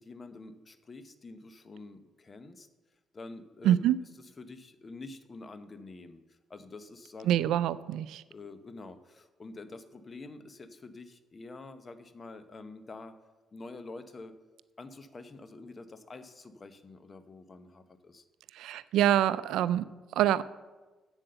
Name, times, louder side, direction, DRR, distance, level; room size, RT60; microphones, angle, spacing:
voice 1, 0.0-2.7 3.1-3.8 4.4-7.3 8.3-13.2 13.5-14.4 14.8-18.2, left 3 dB, 35° left, 11 dB, 0.8 m, -47 dB
voice 2, 3.6-4.0 7.2-8.2 18.5-20.4, right 11 dB, 85° right, 16 dB, 0.4 m, -26 dB
8.1 x 7.7 x 6.8 m, 1.2 s
cardioid pair, 90°, 0 cm